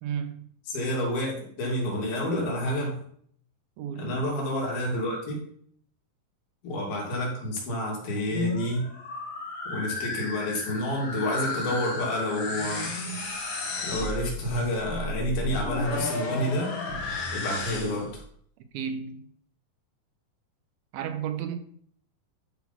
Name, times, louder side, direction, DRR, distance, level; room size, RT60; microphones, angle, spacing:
voice 1, 0.0-0.5 3.8-4.1 18.7-19.3 20.9-21.6, right 8 dB, 85° right, 2.7 m, -33 dB
voice 2, 0.7-3.0 4.0-5.4 6.6-8.9 9.7-12.9 13.8-16.8 17.3-18.2, left 1 dB, 80° left, 4.4 m, -29 dB
sound 1, 8.1-18.2, left 2 dB, 50° left, 1.5 m, -33 dB
11.5 x 4.1 x 5.8 m
omnidirectional pair, 4.2 m